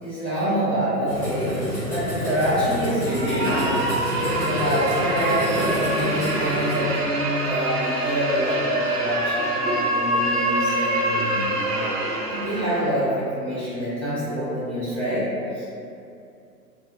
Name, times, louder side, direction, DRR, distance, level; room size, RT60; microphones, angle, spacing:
voice 1, 0.0-1.5 1.9-3.1 4.2-11.0 11.5-15.2 15.5-15.6, equal, 30° left, -16 dB, 0.8 m, -26 dB
sound 1, 1.1-6.8, equal, 10° left, 0.5 m, -29 dB
voice 2, 3.0-4.5 11.0-11.5, equal, 35° right, -11 dB, 0.8 m, -29 dB
sound 2, 3.1-12.9, right 1 dB, 70° right, 0.5 m, -25 dB
2.6 x 2.1 x 2.4 m, 2.5 s
figure-of-eight pair, 110°, 49 cm